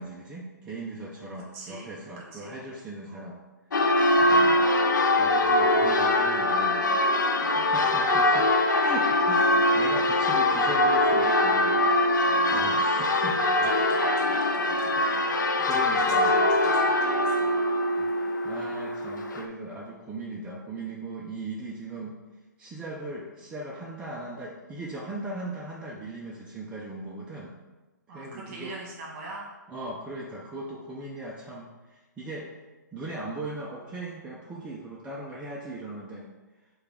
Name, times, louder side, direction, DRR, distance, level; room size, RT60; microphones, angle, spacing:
voice 1, 0.0-3.4 4.1-4.5 4.9-6.8 7.3-8.5 8.8-11.8 12.5-13.9 15.7-16.3 17.9-18.2 18.4-22.2 22.6-27.5 28.1-28.7 29.7-32.5 32.9-36.3, right 2 dB, 10° right, -5 dB, 0.3 m, -38 dB
voice 2, 1.5-2.6 3.1-3.3 4.2-4.6 7.4-7.8 8.8-8.9 12.2-12.9 13.4-17.7 28.1-29.4, right 2 dB, 35° right, -3 dB, 1.4 m, -42 dB
Church bell, 3.7-19.5, left 1 dB, 75° left, 0.5 m, -23 dB
4.6 x 2.3 x 3.5 m, 1.2 s
figure-of-eight pair, 135°, 10 cm